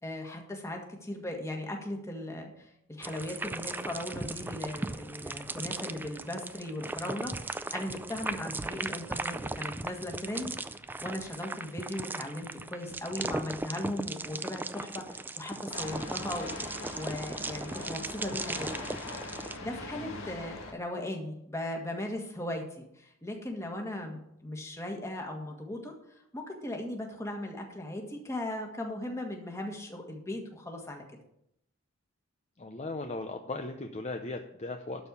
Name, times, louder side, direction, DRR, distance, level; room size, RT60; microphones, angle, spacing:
voice 1, 0.0-10.5 11.0-16.5 16.9-19.2 19.6-25.9 26.3-31.0, left 1 dB, 15° left, 2 dB, 1.7 m, -38 dB
sound 1, 3.0-19.6, right 2 dB, 10° right, 0.3 m, -38 dB
sound 2, 15.7-20.7, left 2 dB, 80° left, 2.0 m, -42 dB
voice 2, 19.9-20.3 32.6-35.1, left 2 dB, 35° left, 5 dB, 0.6 m, -38 dB
12.0 x 4.5 x 8.3 m, 0.78 s
head